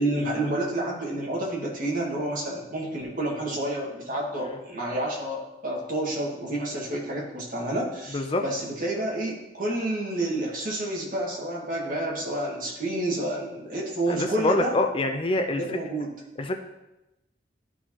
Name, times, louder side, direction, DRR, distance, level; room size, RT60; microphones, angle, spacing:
voice 1, 0.0-14.7 15.6-16.2, right 1 dB, 50° right, -2 dB, 1.8 m, -29 dB
voice 2, 14.1-15.6 16.4-16.6, left 2 dB, 30° left, 5 dB, 0.5 m, -25 dB
12.5 x 4.6 x 2.9 m, 0.96 s
head